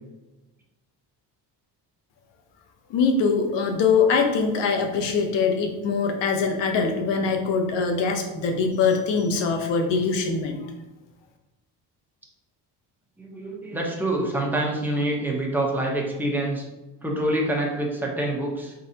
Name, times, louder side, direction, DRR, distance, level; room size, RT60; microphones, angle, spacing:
voice 1, 2.9-10.6, left 5 dB, 80° left, 4 dB, 0.8 m, -23 dB
voice 2, 13.2-16.6 17.0-18.7, right 1 dB, 5° right, -2 dB, 0.9 m, -26 dB
4.0 x 3.9 x 2.8 m, 1.1 s
cardioid pair, 110°, 42 cm